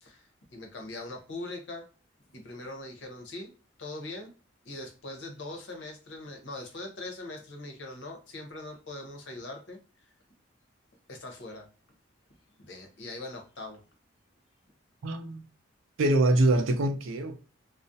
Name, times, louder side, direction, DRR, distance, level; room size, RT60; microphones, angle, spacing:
voice 1, 0.0-1.9 2.3-3.5 3.8-4.3 4.6-10.1 11.1-11.7 12.6-13.8, left 2 dB, 65° left, 0.7 m, -41 dB
voice 2, 15.0-15.4 16.0-17.4, right 1 dB, 90° right, 0.5 m, -24 dB
2.4 x 2.1 x 2.6 m
head